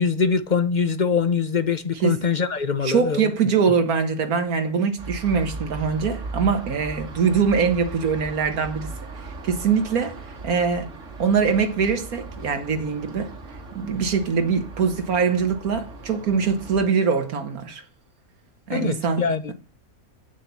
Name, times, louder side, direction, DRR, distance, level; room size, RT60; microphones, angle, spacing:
voice 1, 0.0-3.3 18.7-19.5, left 5 dB, 40° left, 0.7 m, -23 dB
voice 2, 2.8-8.9 9.4-10.9 11.2-13.3 13.7-17.8 18.7-19.5, right 5 dB, 85° right, 1.9 m, -23 dB
sound 1, 5.0-16.9, right 3 dB, 60° right, 2.1 m, -38 dB
8.5 x 7.7 x 8.3 m
omnidirectional pair, 1.5 m